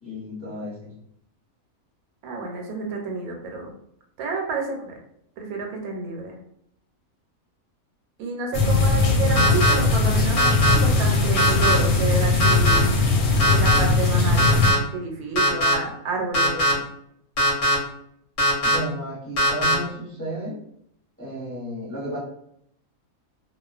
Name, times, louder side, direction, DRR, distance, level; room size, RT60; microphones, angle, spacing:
voice 1, 0.0-0.9 18.6-20.6 21.2-22.2, right 1 dB, 10° left, -10 dB, 0.7 m, -33 dB
voice 2, 2.2-3.7 4.2-5.0 5.4-6.3 8.2-12.9 13.5-16.7, right 3 dB, 85° right, 2 dB, 1.1 m, -30 dB
sound 1, 8.5-14.7, left 3 dB, 90° left, 1.1 m, -20 dB
sound 2, 9.4-9.7 10.4-10.7 11.4-11.7 12.4-12.8 13.4-13.8 14.4-14.8 15.4-15.7 16.3-16.7 17.4-17.7 18.4-18.8 19.4-19.7, equal, 60° left, 0.8 m, -19 dB
2.4 x 2.2 x 2.3 m, 0.72 s
omnidirectional pair, 1.5 m